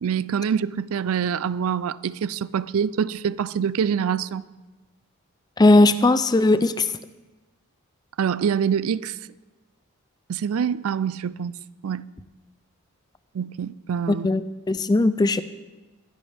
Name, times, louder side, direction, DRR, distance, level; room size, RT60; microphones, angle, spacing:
voice 1, 0.0-4.4 8.2-9.2 10.3-11.5 11.8-12.1 13.3-14.3, right 7 dB, 80° right, 0.4 m, -25 dB
voice 2, 5.6-6.9 14.2-14.4 14.7-15.4, left 2 dB, 20° left, 0.4 m, -17 dB
21.5 x 10.5 x 3.4 m
head